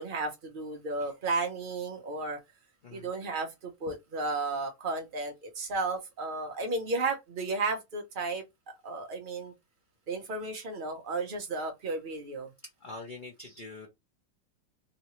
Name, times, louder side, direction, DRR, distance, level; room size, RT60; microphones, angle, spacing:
voice 1, 0.0-2.4 2.9-8.4 8.8-9.5 10.1-12.5, right 3 dB, 85° right, 0.4 m, -33 dB
voice 2, 12.8-13.9, left 3 dB, 50° left, 0.5 m, -44 dB
3.0 x 2.8 x 3.0 m
omnidirectional pair, 1.9 m